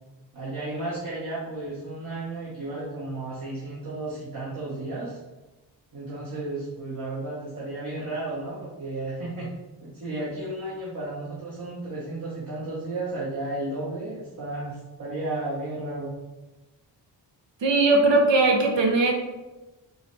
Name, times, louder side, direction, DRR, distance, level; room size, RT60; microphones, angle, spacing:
voice 1, 0.3-5.2 5.9-9.5 9.8-16.1, right 2 dB, 50° right, -6 dB, 1.0 m, -33 dB
voice 2, 17.6-19.1, right 2 dB, 75° right, 1 dB, 0.8 m, -19 dB
4.5 x 2.1 x 3.1 m, 1.1 s
wide cardioid pair, 80°, 44 cm